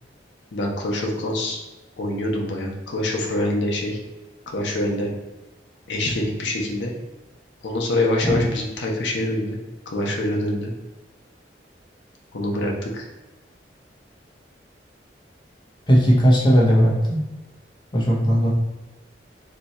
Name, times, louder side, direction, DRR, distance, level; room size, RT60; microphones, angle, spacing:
voice 1, 0.5-1.6 2.0-4.0 4.5-5.1 5.9-6.9 7.6-9.6 9.9-10.7 12.3-13.1, left 1 dB, 90° left, -1 dB, 0.6 m, -25 dB
voice 2, 15.9-17.2 17.9-18.5, equal, 25° left, -3 dB, 0.7 m, -17 dB
2.7 x 2.3 x 4.0 m, 1.1 s
head